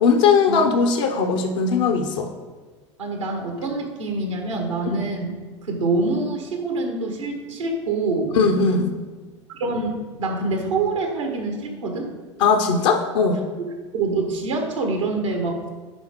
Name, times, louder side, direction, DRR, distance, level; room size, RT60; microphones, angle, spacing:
voice 1, 0.0-2.3 4.9-5.1 8.4-8.9 12.4-13.4, left 5 dB, 65° left, 4 dB, 0.9 m, -19 dB
voice 2, 3.0-5.3 5.6-8.4 9.5-12.1 13.9-15.7, right 3 dB, 80° right, 3 dB, 1.5 m, -25 dB
10.5 x 3.5 x 5.1 m, 1.4 s
figure-of-eight pair, 75°, 16 cm